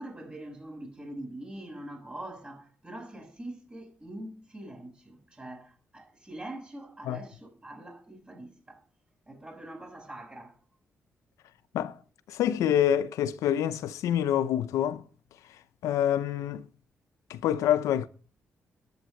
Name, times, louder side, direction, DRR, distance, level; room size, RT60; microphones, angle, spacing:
voice 1, 0.0-8.8 9.3-10.5, right 1 dB, 20° right, 6.4 m, -43 dB
voice 2, 12.3-15.0 15.8-16.6 17.3-18.1, left 10 dB, 85° left, 0.6 m, -26 dB
10.5 x 8.0 x 7.7 m
cardioid pair, 60°, 5 cm